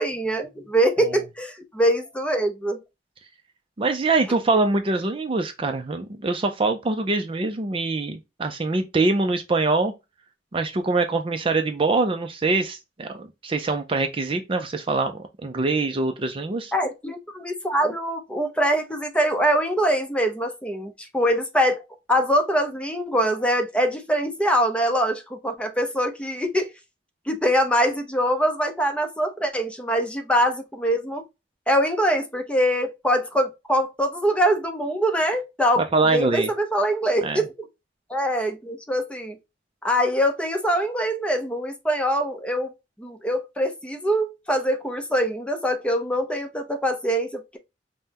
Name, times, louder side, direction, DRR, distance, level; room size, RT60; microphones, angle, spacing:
voice 1, 0.0-2.8 16.7-21.8 22.1-26.7 27.3-31.2 31.7-35.8 36.1-37.5 38.1-39.4 39.8-42.7 43.0-47.6, equal, 5° left, 0.6 m, -23 dB
voice 2, 3.8-9.9 10.5-16.7 35.8-36.5 37.2-37.4, right 3 dB, 30° right, 0.4 m, -24 dB
5.4 x 2.1 x 2.8 m
head